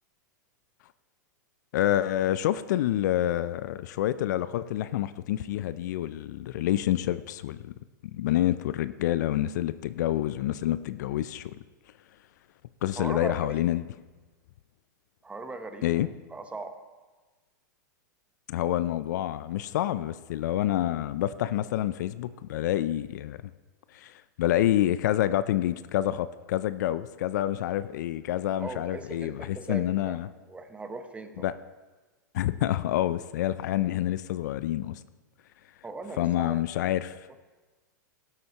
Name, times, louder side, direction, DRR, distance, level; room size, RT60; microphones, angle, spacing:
voice 1, 1.7-7.7 8.0-11.6 12.8-13.8 15.8-16.1 18.5-23.4 23.9-30.3 31.4-31.5 32.3-35.0 36.2-37.3, left 13 dB, 65° left, 15 dB, 0.4 m, -28 dB
voice 2, 13.0-13.6 15.2-16.7 28.6-31.5 35.8-36.6, right 3 dB, 10° right, 8 dB, 0.9 m, -39 dB
16.5 x 7.7 x 2.9 m, 1.3 s
hypercardioid pair, 110°, 10 cm